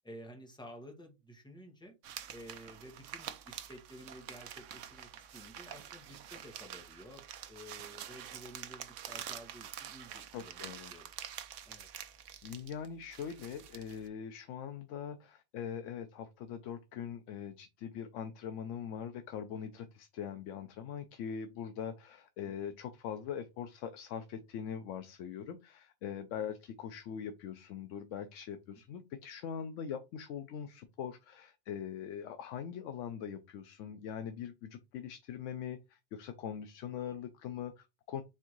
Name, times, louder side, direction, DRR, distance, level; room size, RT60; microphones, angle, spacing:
voice 1, 0.0-1.9 2.3-11.1 11.6-11.9 22.4-22.5, equal, 5° left, 1.0 m, -52 dB
sound 1, 2.0-14.1, right 10 dB, 85° right, 0.9 m, -47 dB
voice 2, 10.3-10.9 12.4-38.2, left 8 dB, 85° left, 0.9 m, -42 dB
4.5 x 3.4 x 3.0 m
omnidirectional pair, 1.2 m